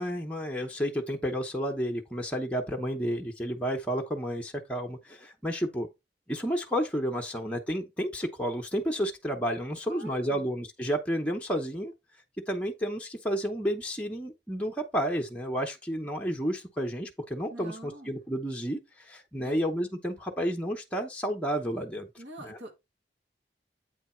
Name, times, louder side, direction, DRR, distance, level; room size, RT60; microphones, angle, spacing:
voice 1, 0.0-5.9 6.3-11.9 12.5-22.1 22.4-22.6, equal, 5° left, 0.8 m, -31 dB
voice 2, 9.9-10.5 17.5-18.1 19.4-19.6 22.2-22.7, right 2 dB, 85° right, 2.0 m, -44 dB
8.3 x 3.4 x 4.4 m
head